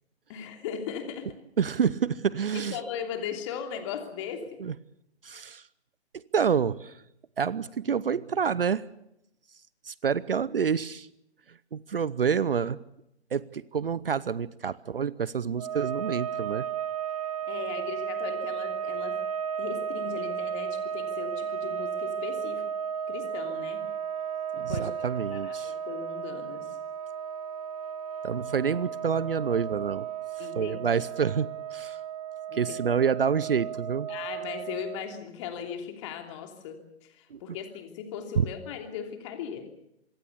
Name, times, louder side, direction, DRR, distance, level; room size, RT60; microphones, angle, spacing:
voice 1, 0.3-1.4 2.5-4.6 17.5-19.2 19.6-22.6 23.1-23.8 24.5-26.8 30.4-30.8 32.5-32.8 34.1-39.7, left 8 dB, 25° left, 5 dB, 3.1 m, -38 dB
voice 2, 1.6-2.8 4.6-4.7 5.2-5.7 6.1-7.0 7.4-8.8 9.8-11.1 11.7-12.8 13.3-16.7 24.6-25.7 28.2-30.1 30.4-32.0 32.5-34.1 37.3-37.4 38.4-38.5, right 7 dB, 55° right, 20 dB, 0.8 m, -28 dB
sound 1, 15.6-35.2, right 8 dB, 35° right, 0.9 m, -34 dB
25.5 x 21.0 x 7.0 m, 0.79 s
figure-of-eight pair, 135°, 33 cm